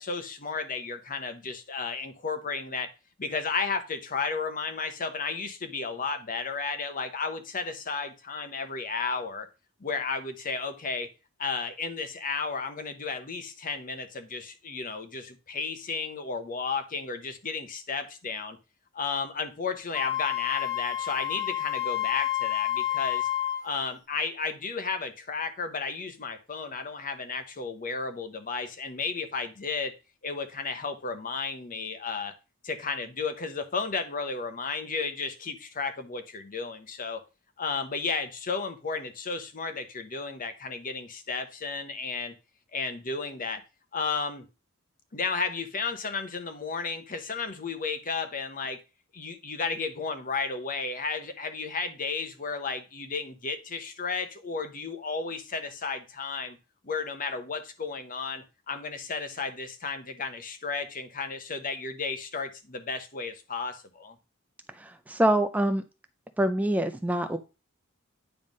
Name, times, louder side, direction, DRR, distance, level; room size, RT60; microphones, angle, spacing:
voice 1, 0.0-2.9 3.2-9.5 9.8-11.1 11.4-18.6 18.9-23.3 23.6-29.9 30.2-32.3 32.6-37.2 37.6-42.3 42.7-43.6 43.9-44.4 45.1-48.8 49.1-56.6 56.8-64.2, left 4 dB, 40° left, 9 dB, 0.9 m, -33 dB
Wind instrument woodwind instrument, 19.9-23.7, left 13 dB, 15° left, 1.3 m, -29 dB
voice 2, 64.7-65.8 66.4-67.4, right 1 dB, 5° right, 9 dB, 0.4 m, -25 dB
9.1 x 3.4 x 5.3 m, 0.30 s
head